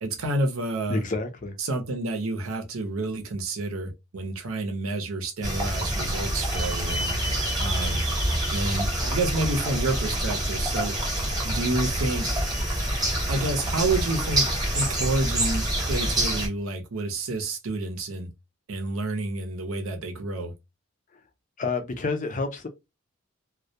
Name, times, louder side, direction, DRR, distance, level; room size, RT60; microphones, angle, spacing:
voice 1, 0.0-1.0 1.6-7.1 7.6-8.0 8.5-10.9 11.4-12.3 13.3-14.5 14.7-18.3 18.7-20.5, right 2 dB, 75° right, 0.6 m, -29 dB
voice 2, 0.9-1.5 21.6-22.7, left 3 dB, 35° left, 0.4 m, -29 dB
sound 1, 5.4-16.5, right 1 dB, 20° right, 0.8 m, -27 dB
2.2 x 2.1 x 2.7 m
head